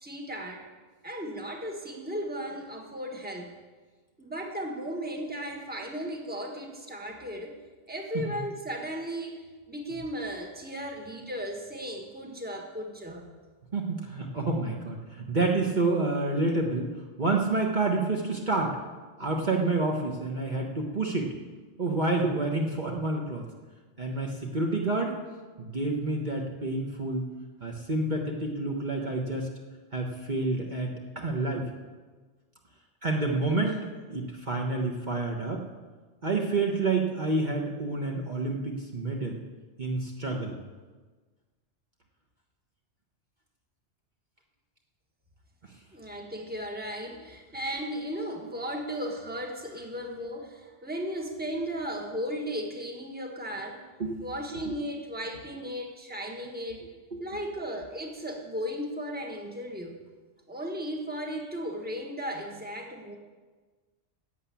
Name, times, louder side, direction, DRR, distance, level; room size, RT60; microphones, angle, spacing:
voice 1, 0.0-0.6 1.0-3.5 4.2-7.6 7.9-9.4 9.7-13.2 14.7-14.9 45.9-53.8 54.2-56.8 57.2-60.0 60.5-63.2, equal, 10° right, 1 dB, 1.5 m, -36 dB
voice 2, 13.7-16.9 17.2-18.8 19.2-21.3 21.8-23.4 24.0-25.1 25.6-27.3 27.6-29.5 29.9-31.7 33.0-33.8 34.1-35.6 36.2-39.4 39.8-40.6 54.0-54.3 54.6-54.8 57.1-57.2, right 3 dB, 40° right, 0 dB, 1.4 m, -28 dB
12.0 x 8.3 x 8.5 m, 1.4 s
omnidirectional pair, 1.2 m